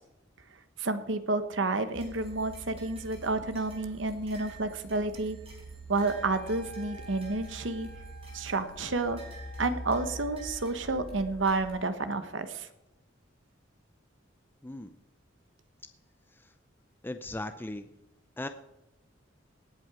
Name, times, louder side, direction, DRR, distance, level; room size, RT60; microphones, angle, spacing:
voice 1, 0.8-5.4 5.9-7.9 8.3-9.2 9.6-12.7, right 3 dB, 70° right, 10 dB, 1.2 m, -30 dB
sound 1, 1.9-11.8, right 2 dB, 30° right, 4.8 m, -45 dB
Wind instrument woodwind instrument, 6.0-12.1, left 2 dB, 80° left, 3.2 m, -51 dB
voice 2, 14.6-14.9 16.4-16.5 17.0-17.9 18.4-18.5, left 1 dB, 10° left, 9 dB, 0.5 m, -38 dB
19.0 x 7.8 x 4.9 m, 0.92 s
head